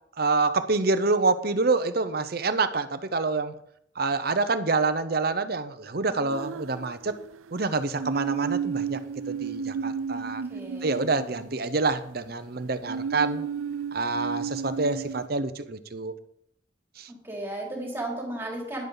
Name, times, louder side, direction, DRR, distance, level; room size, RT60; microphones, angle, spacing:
voice 1, 0.2-3.5 4.0-7.1 7.5-9.0 9.3-10.4 10.8-13.4 13.9-16.1 17.0-17.1, right 3 dB, 50° right, 11 dB, 0.8 m, -27 dB
sound 1, 6.3-7.4 8.0-11.9 12.9-15.3, right 6 dB, 90° right, 0.4 m, -32 dB
voice 2, 10.5-11.0 17.1-18.9, right 1 dB, 10° right, -2 dB, 3.1 m, -35 dB
12.0 x 10.5 x 4.0 m, 0.70 s
head